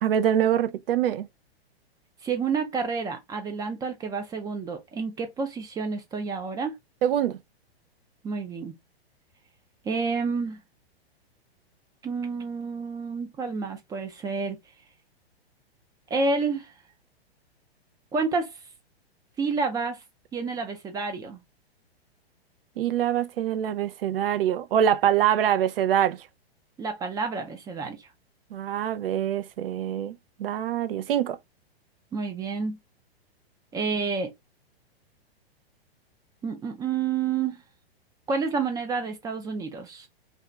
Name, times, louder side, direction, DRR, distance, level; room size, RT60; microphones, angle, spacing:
voice 1, 0.0-1.3 7.0-7.4 22.8-26.3 28.5-30.1 30.4-31.4, right 10 dB, 65° right, 0.6 m, -24 dB
voice 2, 2.2-6.8 8.2-8.7 9.9-10.6 12.0-14.6 16.1-16.7 18.1-18.5 19.4-20.0 20.3-21.4 26.8-28.1 32.1-32.8 33.7-34.3 36.4-37.6 38.3-40.1, right 4 dB, 10° right, 0.4 m, -29 dB
2.6 x 2.3 x 3.0 m
hypercardioid pair, 120°, 31 cm